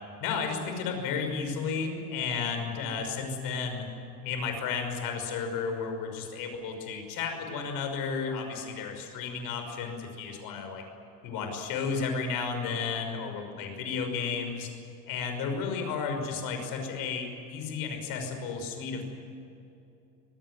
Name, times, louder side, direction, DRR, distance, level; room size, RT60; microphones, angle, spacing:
voice 1, 0.2-3.9 4.2-10.8 11.2-14.7 15.1-19.1, left 5 dB, 45° left, 5 dB, 5.9 m, -33 dB
25.5 x 18.5 x 9.7 m, 2.7 s
supercardioid pair, 160°, 49 cm